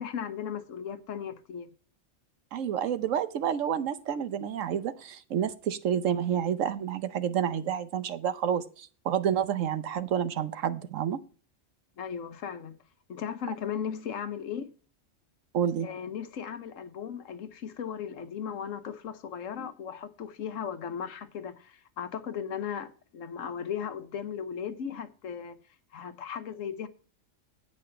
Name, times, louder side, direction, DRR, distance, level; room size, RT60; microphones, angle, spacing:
voice 1, 0.0-1.7 12.0-12.7 13.1-14.7 15.8-25.6 25.9-26.9, left 8 dB, 85° left, 1.3 m, -36 dB
voice 2, 2.5-11.2 15.5-15.9, right 9 dB, 85° right, 1.2 m, -29 dB
8.6 x 5.4 x 7.6 m
omnidirectional pair, 1.3 m